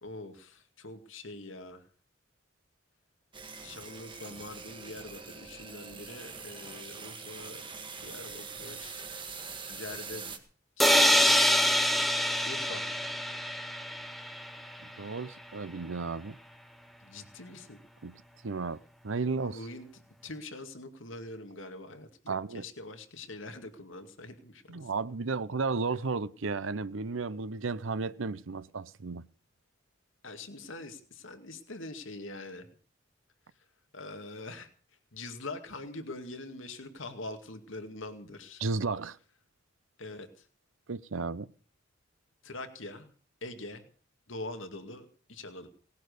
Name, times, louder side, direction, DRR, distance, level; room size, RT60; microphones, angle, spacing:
voice 1, 0.0-1.8 3.6-7.6 8.0-9.0 9.7-10.3 10.8-11.7 12.4-12.9 17.0-17.8 19.4-19.9 20.2-24.8 30.2-32.7 33.9-34.7 35.1-38.6 40.0-40.4 42.4-43.1 43.4-43.9 44.3-45.7, left 2 dB, 75° left, 2.2 m, -44 dB
sound 1, 3.3-10.4, right 5 dB, 25° right, 1.9 m, -43 dB
sound 2, 10.8-14.6, equal, ahead, 1.1 m, -25 dB
voice 2, 14.8-16.4 18.0-18.1 18.4-19.6 22.3-22.7 24.7-29.2 38.6-39.2 40.9-41.5, right 4 dB, 75° right, 0.7 m, -33 dB
18.5 x 10.5 x 6.7 m
head